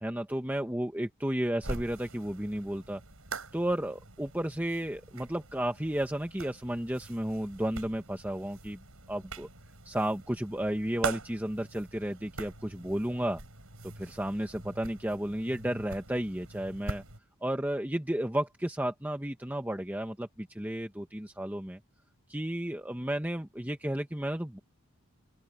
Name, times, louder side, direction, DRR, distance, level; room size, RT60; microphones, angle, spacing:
voice 1, 0.0-3.0 3.5-8.8 9.1-9.5 9.8-13.4 13.8-17.0 17.4-21.8 22.3-24.6, right 1 dB, 10° right, 1.0 m, -33 dB
sound 1, 1.6-17.2, right 3 dB, 70° right, 5.6 m, -43 dB
open air
head